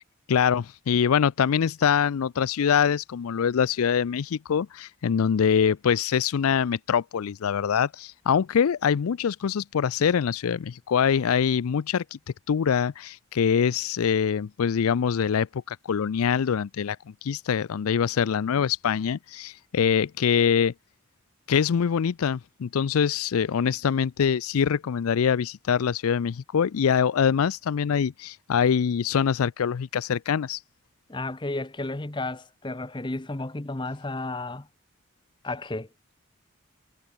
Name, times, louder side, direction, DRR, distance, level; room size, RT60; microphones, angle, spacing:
voice 1, 0.3-12.2 12.5-17.0 17.2-20.7 21.5-30.6, left 7 dB, 80° left, 0.4 m, -24 dB
voice 2, 31.1-34.7 35.4-35.9, left 2 dB, 20° left, 0.8 m, -32 dB
head